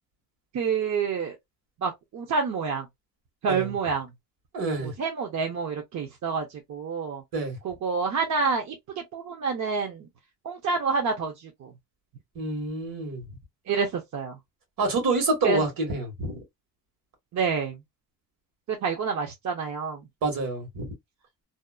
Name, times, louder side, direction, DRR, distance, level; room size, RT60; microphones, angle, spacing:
voice 1, 0.5-1.4 1.8-2.9 3.4-4.1 4.8-7.2 7.6-10.1 10.4-11.7 13.7-14.4 15.4-15.6 17.3-17.8 18.7-20.1, right 5 dB, 50° right, 0.8 m, -28 dB
voice 2, 4.5-4.9 7.3-7.6 12.3-13.2 14.8-16.4 20.2-20.9, right 3 dB, 65° right, 1.5 m, -27 dB
2.8 x 2.0 x 2.3 m
cardioid pair, 110°, 36 cm